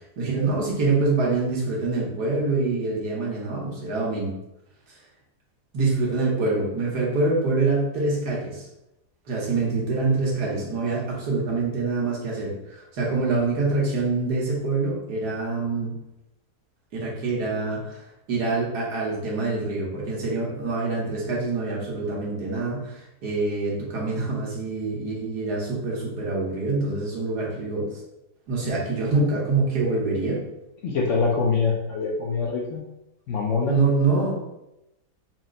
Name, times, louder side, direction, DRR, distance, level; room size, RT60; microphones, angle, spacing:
voice 1, 0.2-4.3 5.7-8.7 9.3-16.0 16.9-27.9 28.5-30.4 33.7-34.3, right 3 dB, 80° right, -4 dB, 1.6 m, -25 dB
voice 2, 30.8-32.8 33.3-33.8, left 4 dB, 65° left, -2 dB, 0.8 m, -24 dB
4.2 x 2.1 x 3.7 m, 0.88 s
omnidirectional pair, 1.7 m